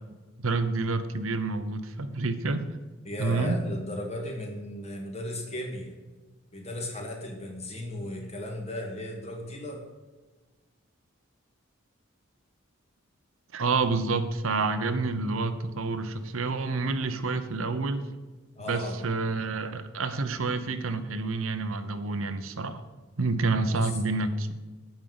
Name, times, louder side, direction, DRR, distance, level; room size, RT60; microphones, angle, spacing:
voice 1, 0.4-2.7 3.2-3.6 13.5-18.0 18.6-22.8 23.2-24.5, right 3 dB, 80° right, 9 dB, 0.9 m, -28 dB
voice 2, 3.0-5.9 6.5-9.8 18.6-19.0 23.7-24.0, left 1 dB, 30° left, 1 dB, 2.0 m, -36 dB
8.9 x 5.4 x 7.9 m, 1.3 s
head